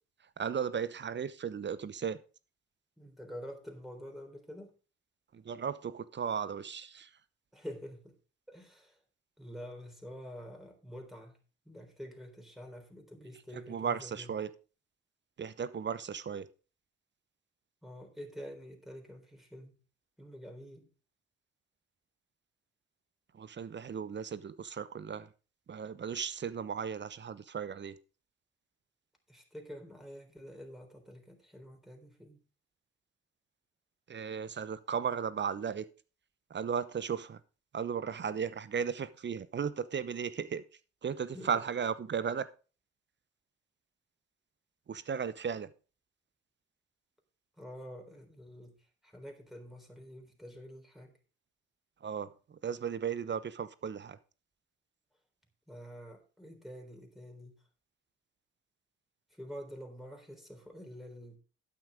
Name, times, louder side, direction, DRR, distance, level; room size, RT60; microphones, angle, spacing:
voice 1, 0.4-2.2 5.3-7.1 13.7-14.5 15.4-16.5 23.3-25.3 25.7-28.0 34.1-35.8 36.5-37.4 37.7-40.6 41.0-42.5 44.9-45.7 52.0-54.2, right 7 dB, 35° right, 0.9 m, -35 dB
voice 2, 3.0-4.7 7.5-8.2 8.5-9.0 9.4-11.4 11.7-14.3 17.8-19.8 20.2-20.9 29.3-32.4 41.3-41.5 47.6-48.8 49.0-51.1 55.7-57.6 59.3-61.4, equal, ahead, 3.8 m, -47 dB
12.0 x 9.0 x 3.6 m
figure-of-eight pair, 40°, 32 cm